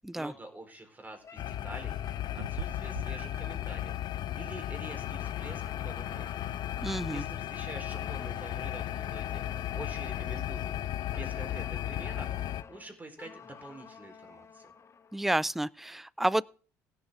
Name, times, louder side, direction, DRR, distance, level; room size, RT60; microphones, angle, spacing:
voice 1, 0.1-2.0 2.3-4.0 4.3-6.5 7.1-9.4 9.7-10.8 11.1-12.3 12.7-14.7, right 2 dB, 20° right, 4.3 m, -47 dB
sound 1, 1.2-4.3 4.7-7.3 7.8-10.5 11.1-15.3, left 5 dB, 35° left, 1.2 m, -52 dB
sound 2, 1.4-12.6, left 12 dB, 60° left, 0.7 m, -35 dB
Meow, 2.4-12.0, right 11 dB, 80° right, 0.8 m, -51 dB
voice 2, 6.8-7.2 15.1-16.4, right 1 dB, 5° right, 0.4 m, -30 dB
17.0 x 7.1 x 3.7 m
hypercardioid pair, 60°, 8 cm